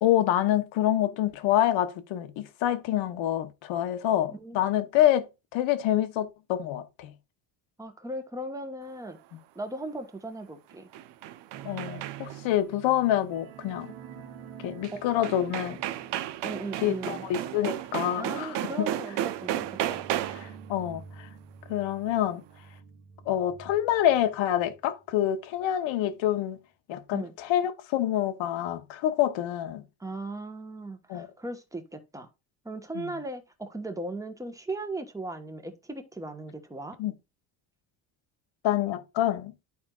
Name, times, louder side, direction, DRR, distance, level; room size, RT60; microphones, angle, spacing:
voice 1, 0.0-5.3 5.5-7.1 11.6-13.9 14.6-15.8 16.8-18.9 20.4-21.3 21.7-22.4 23.3-26.6 26.9-29.8 31.1-31.3 32.9-33.1 37.0-37.1 38.6-39.5, left 12 dB, 70° left, 1.1 m, -27 dB
voice 2, 7.8-9.2 9.5-10.9 14.9-15.1 16.4-17.2 18.2-20.0 27.1-27.3 30.0-32.3 32.6-37.0, right 2 dB, 5° right, 1.2 m, -37 dB
sound 1, 10.7-12.5 14.8-14.9 15.2-20.6, right 12 dB, 60° right, 0.7 m, -33 dB
sound 2, 11.5-24.8 25.1-25.3 25.7-25.8, right 8 dB, 90° right, 1.4 m, -48 dB
12.0 x 4.3 x 2.4 m
cardioid pair, 105°, 47 cm